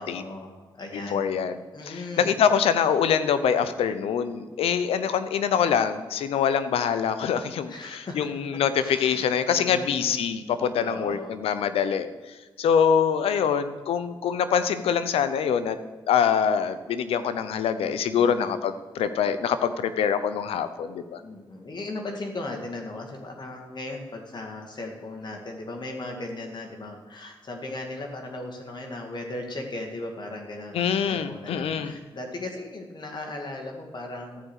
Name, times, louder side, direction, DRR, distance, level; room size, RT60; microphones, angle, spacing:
voice 1, 0.0-1.2 1.7-2.3 7.6-10.1 10.8-11.4 18.0-18.5 21.2-34.5, left 2 dB, 50° left, 2 dB, 2.1 m, -37 dB
voice 2, 0.9-1.5 1.8-12.1 12.6-15.8 16.1-21.2 30.7-32.0, left 7 dB, 90° left, 11 dB, 0.7 m, -24 dB
13.5 x 5.1 x 8.1 m, 1.3 s
cardioid pair, 60°, 10 cm